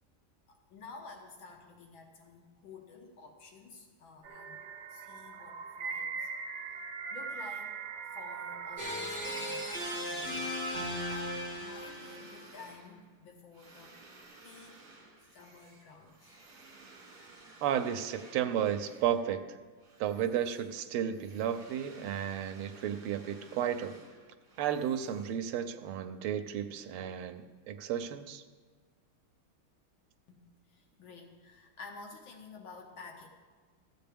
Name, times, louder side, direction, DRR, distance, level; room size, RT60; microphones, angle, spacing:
voice 1, 0.5-4.6 4.9-6.5 7.1-7.8 8.1-9.8 10.1-10.6 11.0-13.9 14.4-14.8 15.3-16.4 30.3-30.4 30.7-33.3, left 4 dB, 70° left, 2 dB, 1.7 m, -51 dB
sound 1, 4.2-10.0, right 5 dB, 65° right, 1.1 m, -41 dB
sound 2, 8.8-12.5, equal, 20° right, 1.6 m, -37 dB
sound 3, 9.4-19.4 19.8-25.8, right 3 dB, 50° right, 2.1 m, -56 dB
voice 2, 17.6-19.6 20.0-24.0 24.6-28.4, right 9 dB, 90° right, 8 dB, 1.5 m, -33 dB
14.5 x 8.9 x 3.4 m, 1.5 s
omnidirectional pair, 2.3 m